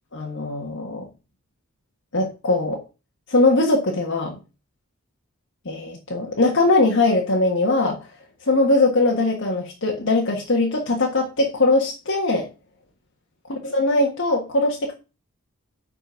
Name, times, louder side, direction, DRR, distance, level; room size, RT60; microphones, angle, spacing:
voice 1, 0.1-1.0 2.1-2.8 3.3-4.4 5.6-8.0 8.4-12.5 13.6-14.9, left 2 dB, 60° left, 0 dB, 1.6 m, -21 dB
9.4 x 4.5 x 5.8 m, 0.31 s
head